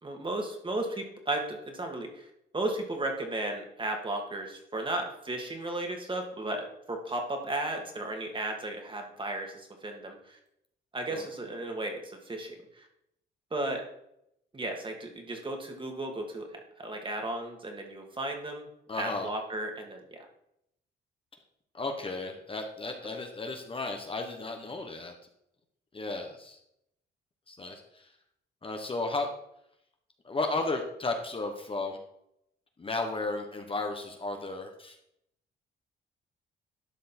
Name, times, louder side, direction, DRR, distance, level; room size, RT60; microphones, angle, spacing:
voice 1, 0.0-2.3 2.5-10.4 10.9-12.9 13.5-13.9 14.5-18.7 19.0-20.3, right 2 dB, 25° right, 3 dB, 2.2 m, -35 dB
voice 2, 18.9-19.3 21.7-25.1 25.9-26.6 27.5-28.1 28.6-29.3 30.2-32.0 32.8-35.0, left 3 dB, 25° left, 4 dB, 1.3 m, -34 dB
12.0 x 5.1 x 4.4 m, 0.76 s
cardioid pair, 90°, 20 cm